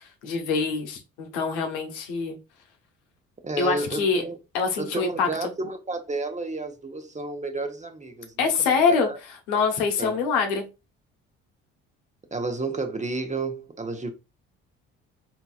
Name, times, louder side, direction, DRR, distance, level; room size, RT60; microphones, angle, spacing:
voice 1, 0.0-2.4 3.6-4.2 4.5-5.5 8.4-9.1 9.5-10.7, left 5 dB, 85° left, 0.9 m, -25 dB
voice 2, 3.4-4.4 4.8-8.5 8.9-9.2 10.0-10.2 12.3-14.1, right 3 dB, 20° right, 0.9 m, -31 dB
3.8 x 2.8 x 2.3 m
hypercardioid pair, 60°, 33 cm